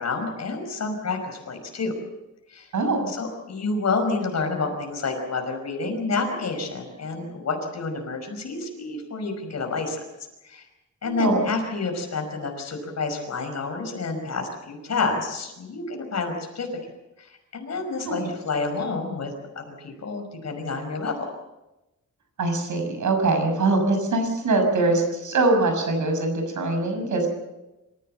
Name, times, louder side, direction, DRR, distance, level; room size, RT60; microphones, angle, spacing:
voice 1, 0.0-1.9 2.5-2.7 3.1-10.0 10.4-10.6 11.0-16.7 17.2-21.3, left 3 dB, 60° left, 3 dB, 5.5 m, -29 dB
voice 2, 2.7-3.1 11.0-11.5 18.0-18.3 22.4-27.3, right 2 dB, 75° right, 5 dB, 6.4 m, -23 dB
26.5 x 15.5 x 7.9 m, 1.0 s
wide cardioid pair, 170°, 30 cm